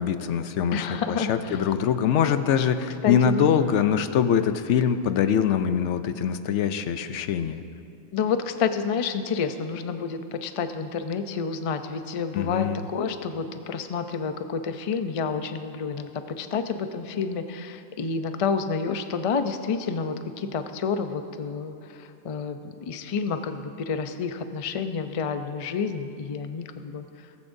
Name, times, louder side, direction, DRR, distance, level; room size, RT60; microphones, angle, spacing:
voice 1, 0.0-7.6 12.3-12.9, left 8 dB, 80° left, 10 dB, 0.9 m, -23 dB
voice 2, 0.7-1.6 3.0-3.9 8.1-27.1, left 5 dB, 40° left, 8 dB, 0.5 m, -29 dB
17.5 x 15.0 x 2.6 m, 2.6 s
omnidirectional pair, 1.2 m